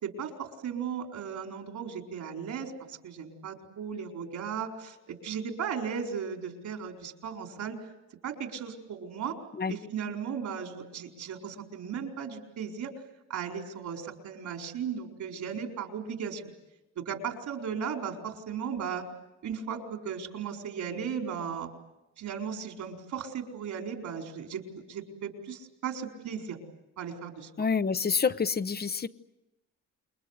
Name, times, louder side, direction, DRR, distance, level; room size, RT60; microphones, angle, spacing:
voice 1, 0.0-7.8 8.2-9.4 9.7-12.9 13.3-16.4 17.0-19.0 19.4-21.7 22.2-24.6 24.9-26.6 27.0-27.5, right 7 dB, 75° right, 3 dB, 4.6 m, -36 dB
voice 2, 27.6-29.1, left 5 dB, 30° left, 13 dB, 1.0 m, -27 dB
28.5 x 22.5 x 8.2 m, 0.94 s
cardioid pair, 90°, 30 cm